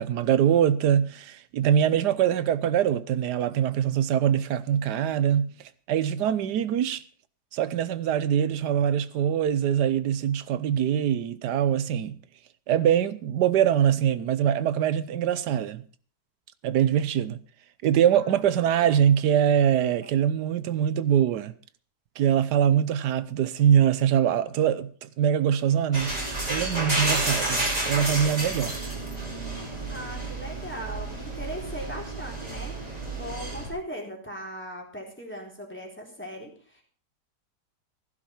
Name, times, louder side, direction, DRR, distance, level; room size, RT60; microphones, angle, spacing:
voice 1, 0.0-5.5 5.9-7.0 7.5-12.2 12.7-15.8 16.6-17.4 17.8-21.5 22.2-26.2 26.5-28.8, right 9 dB, 80° right, 1.4 m, -23 dB
voice 2, 18.1-19.0 20.0-20.1 29.6-36.8, equal, 5° left, 3.9 m, -39 dB
sound 1, 25.9-33.7, right 2 dB, 20° right, 5.1 m, -30 dB
16.0 x 11.5 x 4.5 m
omnidirectional pair, 1.8 m